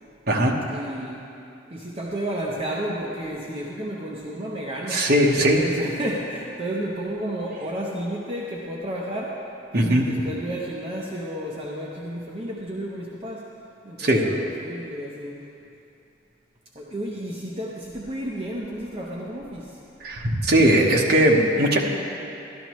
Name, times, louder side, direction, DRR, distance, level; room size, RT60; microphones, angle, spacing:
voice 1, 0.7-1.2 1.7-5.1 5.4-9.4 9.7-13.5 13.8-15.5 16.7-19.8, right 1 dB, 30° right, -4 dB, 0.8 m, -32 dB
voice 2, 4.9-5.6 9.7-10.1 14.0-14.2 20.0-21.8, right 1 dB, 55° right, -1 dB, 1.1 m, -19 dB
12.5 x 12.0 x 3.1 m, 2.7 s
head